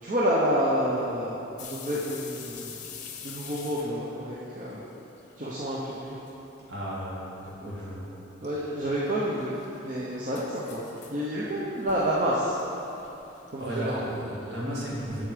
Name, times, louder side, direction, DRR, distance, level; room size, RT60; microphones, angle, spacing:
voice 1, 0.0-2.7 3.2-4.8 5.4-6.2 8.4-9.6 9.8-10.8 11.1-12.6 13.5-14.0, equal, 40° right, -6 dB, 0.9 m, -29 dB
sound 1, 1.6-5.4 5.6-6.3 6.7-6.8 7.4-7.8 8.8-14.2, left 7 dB, 40° left, 0.7 m, -46 dB
voice 2, 6.7-8.1 13.0-13.1 13.6-15.2, right 1 dB, 60° right, -6 dB, 2.2 m, -35 dB
8.2 x 7.4 x 5.1 m, 3.0 s
head